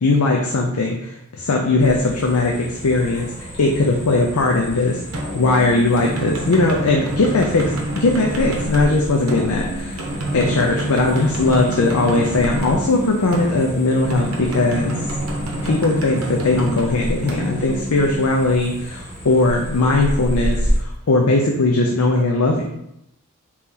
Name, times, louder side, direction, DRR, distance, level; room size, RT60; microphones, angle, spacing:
voice 1, 0.0-3.3 3.6-5.0 5.3-10.0 10.3-14.9 15.6-22.7, left 2 dB, 85° left, 0 dB, 0.5 m, -19 dB
sound 1, 1.8-20.8, equal, 30° left, 1.1 m, -31 dB
sound 2, 5.1-18.7, right 1 dB, 75° right, 0.9 m, -28 dB
4.0 x 3.0 x 3.7 m, 0.79 s
head